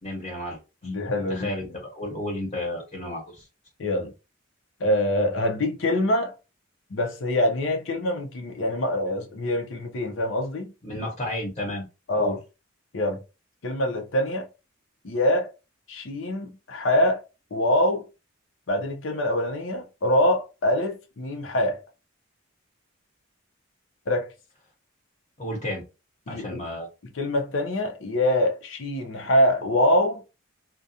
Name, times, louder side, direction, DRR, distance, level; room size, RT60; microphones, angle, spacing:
voice 1, 0.0-0.9 1.3-3.5 10.8-11.8 12.2-12.4 25.4-25.8 26.3-26.9, left 1 dB, 30° left, 0.9 m, -32 dB
voice 2, 0.8-1.8 3.8-4.1 4.8-6.3 6.9-10.7 12.1-12.4 12.9-13.2 13.6-14.5 15.0-15.5 15.9-17.2 17.5-18.1 18.7-21.8 24.1-24.3 26.3-26.6 27.1-30.2, left 1 dB, 70° left, 0.6 m, -24 dB
2.4 x 2.2 x 2.7 m
head